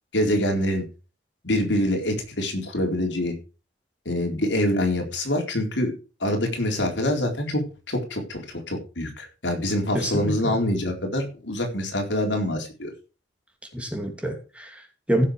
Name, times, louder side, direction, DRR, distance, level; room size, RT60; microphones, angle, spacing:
voice 1, 0.1-0.8 1.4-3.3 4.1-5.9 6.2-7.6 7.9-12.9, left 1 dB, 80° left, 4.0 m, -25 dB
voice 2, 9.9-10.6 13.7-15.2, equal, 5° right, 2.7 m, -27 dB
15.5 x 6.9 x 5.0 m
head